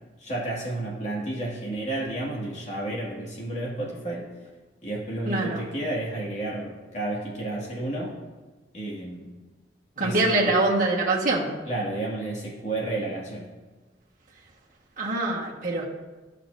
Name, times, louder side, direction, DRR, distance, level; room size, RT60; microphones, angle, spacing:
voice 1, 0.2-4.3 4.8-8.1 8.7-9.3 10.0-10.5 11.7-13.4, right 2 dB, 40° left, -4 dB, 2.1 m, -31 dB
voice 2, 5.2-5.6 10.0-11.5 15.0-15.8, right 2 dB, 50° right, -4 dB, 1.5 m, -24 dB
14.0 x 5.9 x 2.7 m, 1.3 s
head